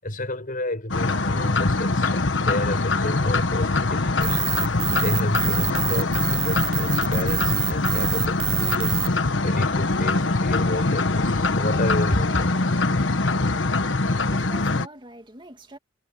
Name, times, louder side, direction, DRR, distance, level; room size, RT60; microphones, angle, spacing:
voice 1, 0.0-12.8, left 1 dB, 45° left, 5.8 m, -31 dB
sound 1, 0.9-14.9, left 3 dB, 75° left, 1.3 m, -23 dB
sound 2, 4.2-9.1, right 13 dB, 70° right, 0.8 m, -27 dB
voice 2, 13.7-15.8, right 1 dB, 25° right, 2.4 m, -44 dB
head